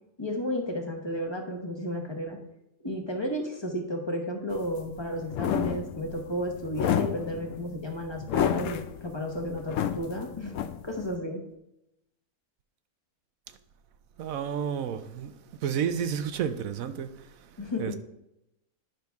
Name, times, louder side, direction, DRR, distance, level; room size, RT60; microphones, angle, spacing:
voice 1, 0.2-2.4 2.8-10.6 10.8-11.4 17.6-17.9, equal, 20° left, 1.0 m, -33 dB
sound 1, 4.5-11.2, left 9 dB, 70° left, 0.8 m, -30 dB
voice 2, 14.2-15.3 15.6-17.1 17.8-17.9, right 8 dB, 75° right, 1.0 m, -30 dB
10.5 x 5.8 x 3.5 m
omnidirectional pair, 1.5 m